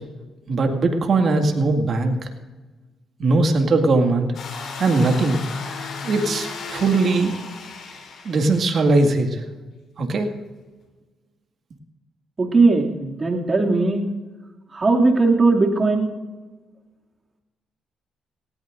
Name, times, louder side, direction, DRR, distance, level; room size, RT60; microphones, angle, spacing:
voice 1, 0.5-2.1 3.2-4.3 4.8-5.4 6.0-7.4 8.3-9.4 10.0-10.3, right 3 dB, 55° right, 4 dB, 2.0 m, -20 dB
sound 1, 4.3-8.8, left 4 dB, 65° left, 3.6 m, -34 dB
voice 2, 12.4-14.1 14.7-16.1, right 3 dB, 35° right, 0 dB, 2.5 m, -18 dB
18.0 x 18.0 x 2.6 m, 1.2 s
cardioid pair, 90°, 0 cm